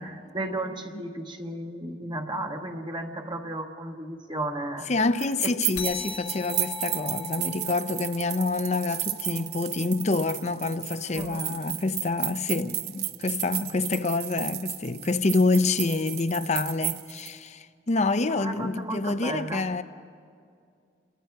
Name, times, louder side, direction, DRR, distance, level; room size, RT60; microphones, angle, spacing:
voice 1, 0.0-4.9 5.4-5.5 11.1-11.6 18.4-19.7, right 1 dB, 25° right, 1.2 m, -34 dB
voice 2, 4.9-19.8, left 3 dB, 40° left, 0.6 m, -27 dB
sound 1, 5.2-17.3, right 13 dB, 55° right, 0.7 m, -33 dB
sound 2, 5.8-10.7, left 6 dB, 70° left, 1.6 m, -41 dB
29.0 x 22.5 x 4.7 m
head